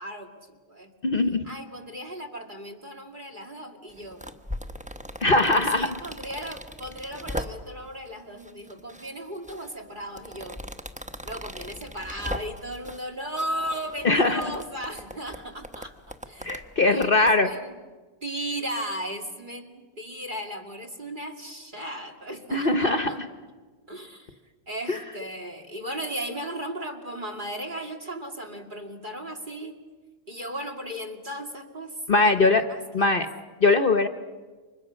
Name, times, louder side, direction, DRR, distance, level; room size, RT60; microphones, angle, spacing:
voice 1, 0.0-0.9 1.4-4.2 5.4-10.6 11.2-16.5 16.8-17.8 18.2-23.2 23.9-24.4 24.7-29.8 30.3-33.3, right 1 dB, 35° right, 7 dB, 2.6 m, -36 dB
voice 2, 1.0-1.4 5.2-5.9 14.0-14.4 16.4-17.5 22.5-23.2 24.9-25.0 32.1-32.6 32.9-33.3 33.6-34.1, left 3 dB, 45° left, 8 dB, 1.1 m, -21 dB
sound 1, 3.9-7.9 8.4-9.1 9.4-13.1 13.4-17.4, equal, 5° right, 1.0 m, -39 dB
29.5 x 26.0 x 6.4 m, 1.4 s
omnidirectional pair, 1.4 m